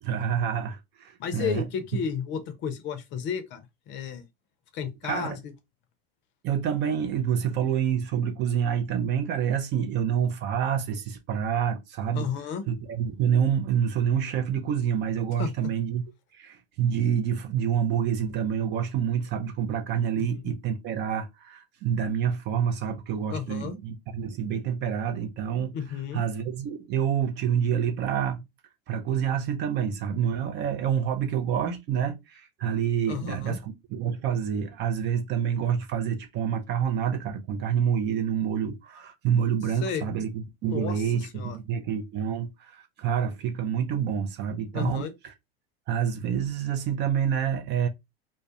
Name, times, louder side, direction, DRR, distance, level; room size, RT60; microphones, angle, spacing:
voice 1, 0.0-1.7 5.0-5.4 6.4-12.3 12.7-16.0 16.4-25.8 26.1-28.4 28.9-45.3 45.9-47.9, right 8 dB, 35° right, 0.5 m, -27 dB
voice 2, 1.2-4.2 4.7-5.4 12.1-12.6 15.4-15.5 20.1-20.5 23.3-23.8 25.7-26.2 33.1-33.6 39.8-40.1 40.6-41.6 44.7-45.1, left 7 dB, 40° left, 0.6 m, -33 dB
2.2 x 2.1 x 2.7 m
hypercardioid pair, 90°, 30 cm